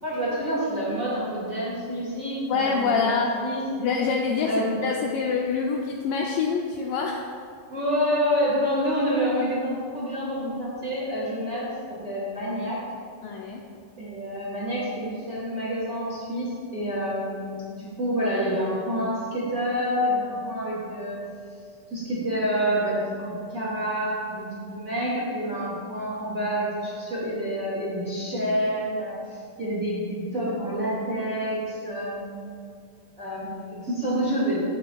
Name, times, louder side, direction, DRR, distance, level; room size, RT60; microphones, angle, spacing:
voice 1, 0.0-3.6 4.5-4.7 7.7-11.7 12.0-12.8 14.0-21.2 21.9-32.5 33.2-34.6, equal, 30° right, -8 dB, 1.8 m, -28 dB
voice 2, 2.5-3.3 3.8-4.5 4.8-7.3 13.2-13.6, left 5 dB, 90° left, 0 dB, 1.9 m, -25 dB
16.0 x 7.7 x 2.4 m, 2.3 s
omnidirectional pair, 4.6 m